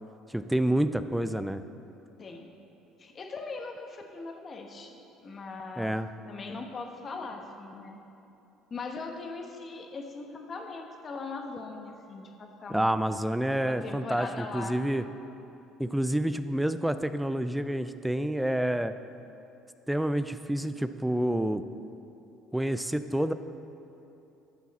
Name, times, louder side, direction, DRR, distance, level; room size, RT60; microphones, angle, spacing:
voice 1, 0.3-1.6 5.8-6.1 12.7-15.0 15.8-18.9 19.9-21.6 22.5-23.3, right 1 dB, 5° right, 12 dB, 0.4 m, -28 dB
voice 2, 2.2-2.5 3.0-5.0 5.2-6.0 6.3-8.0 8.7-13.2 13.6-14.8, left 3 dB, 35° left, 3 dB, 1.1 m, -40 dB
11.5 x 7.2 x 4.2 m, 2.9 s
supercardioid pair, 90°, 0 cm